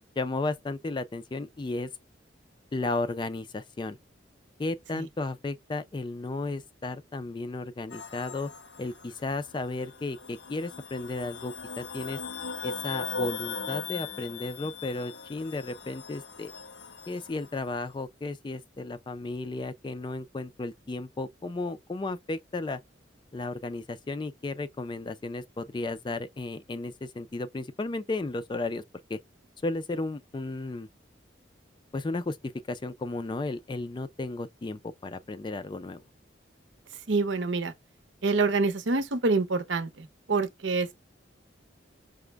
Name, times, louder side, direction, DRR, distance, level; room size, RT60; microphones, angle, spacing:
voice 1, 0.2-1.9 2.7-4.0 4.6-8.5 8.8-12.2 12.6-16.5 17.1-22.8 23.3-28.8 29.1-29.2 29.6-30.9 31.9-36.0, left 2 dB, 25° left, 0.3 m, -34 dB
sound 1, 7.9-17.6, left 5 dB, 65° left, 0.7 m, -39 dB
voice 2, 37.1-37.7 38.2-40.9, right 3 dB, 80° right, 0.7 m, -26 dB
5.0 x 2.1 x 3.3 m
head